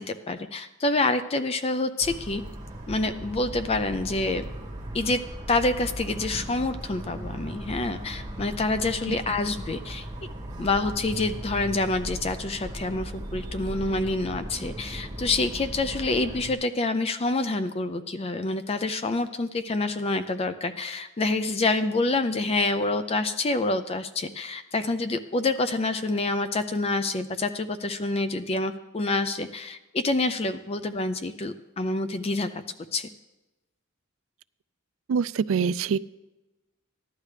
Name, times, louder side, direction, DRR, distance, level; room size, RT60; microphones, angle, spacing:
voice 1, 0.0-2.4 2.9-4.5 4.9-5.2 5.5-10.1 10.6-32.5 32.9-33.1, left 2 dB, 30° left, 10 dB, 0.4 m, -27 dB
Motor vehicle (road) / Siren, 2.0-16.5, right 1 dB, 20° right, 1.9 m, -37 dB
voice 2, 35.1-36.0, right 6 dB, 65° right, 17 dB, 0.3 m, -25 dB
14.5 x 11.5 x 3.3 m, 1.1 s
head